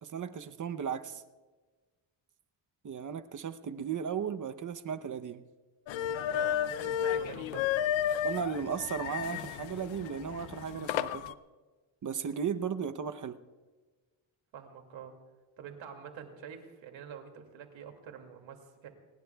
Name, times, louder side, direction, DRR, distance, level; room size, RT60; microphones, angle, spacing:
voice 1, 0.0-1.2 2.8-5.4 8.2-11.4 12.0-13.4, right 7 dB, 45° right, 9 dB, 0.8 m, -35 dB
sound 1, 5.9-11.3, left 10 dB, 80° left, 0.6 m, -33 dB
voice 2, 6.3-7.7 14.5-15.1 15.6-18.9, right 7 dB, 85° right, 5 dB, 2.5 m, -46 dB
26.5 x 19.5 x 2.3 m, 1.3 s
cardioid pair, 105°, 45 cm